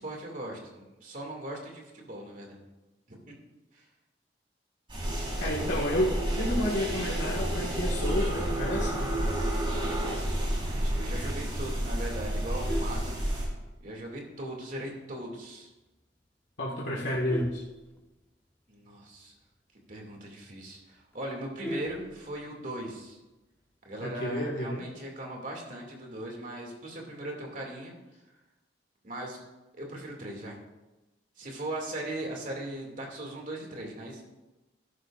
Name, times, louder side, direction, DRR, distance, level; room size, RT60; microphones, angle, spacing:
voice 1, 0.0-2.6 3.2-3.4 3.7-3.9 9.7-13.2 13.8-15.7 18.7-19.3 19.9-23.2 23.9-27.9 29.0-29.4 29.7-30.6 31.4-34.3, right 1 dB, 50° right, 0 dB, 2.4 m, -39 dB
sound 1, 4.9-13.4, right 1 dB, 30° right, 4.1 m, -30 dB
voice 2, 5.4-9.1 16.6-17.6 24.0-24.9, left 1 dB, 80° left, -6 dB, 1.8 m, -30 dB
Vehicle horn car horn honking, 12.4-13.9 14.3-14.6 14.9-15.0 15.4-15.5 15.8-16.2 16.7-18.6 18.9-19.0 19.3-19.4 19.8-19.9 20.3-20.4 20.6-22.7 23.9-24.3, equal, 10° left, 1.0 m, -40 dB
13.5 x 11.5 x 2.5 m, 1.1 s
head